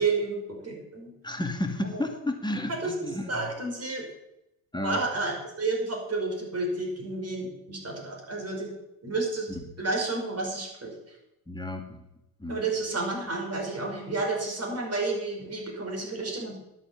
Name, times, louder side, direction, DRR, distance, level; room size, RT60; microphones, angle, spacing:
voice 1, 0.0-1.1 2.8-2.9 3.3-4.1 4.8-8.7 9.0-9.5 9.8-10.9 12.5-16.6, right 3 dB, 30° right, 0 dB, 5.2 m, -30 dB
voice 2, 1.2-3.5 4.7-5.0 9.5-9.6 11.5-12.0 12.4-12.6, left 1 dB, 10° left, 4 dB, 2.1 m, -32 dB
11.5 x 7.5 x 7.2 m, 0.90 s
supercardioid pair, 75°, 46 cm